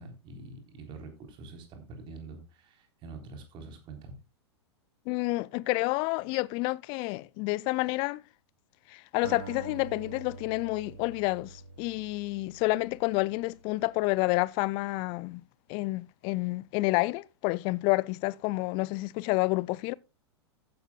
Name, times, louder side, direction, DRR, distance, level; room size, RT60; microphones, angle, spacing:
voice 1, 0.0-4.1, right 3 dB, 35° right, 3.7 m, -45 dB
voice 2, 5.1-8.2 8.9-15.4 15.7-19.9, left 22 dB, 35° left, 0.5 m, -29 dB
Acoustic guitar, 9.2-13.7, right 5 dB, 50° right, 2.3 m, -46 dB
14.5 x 11.0 x 2.3 m
figure-of-eight pair, 95°, 15 cm